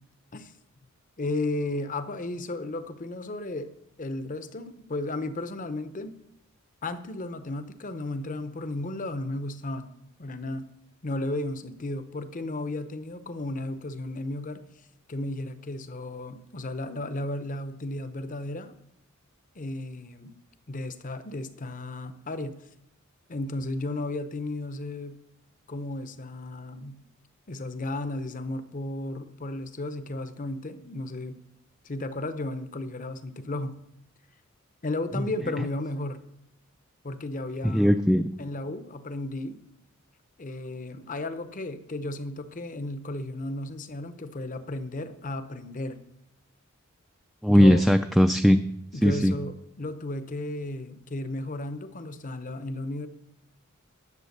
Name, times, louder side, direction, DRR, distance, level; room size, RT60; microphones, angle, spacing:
voice 1, 1.2-6.2 6.8-9.9 10.2-10.7 11.0-14.6 15.1-18.7 19.5-20.3 20.7-22.6 23.3-25.2 25.7-27.0 27.5-31.4 31.8-33.8 34.8-36.2 37.0-38.0 38.4-39.6 40.4-46.0 47.5-47.9 48.9-53.1, left 2 dB, 40° left, 11 dB, 0.8 m, -34 dB
voice 2, 37.6-38.3 47.4-48.6 49.0-49.3, equal, ahead, 7 dB, 0.3 m, -19 dB
11.0 x 7.4 x 6.6 m, 0.79 s
head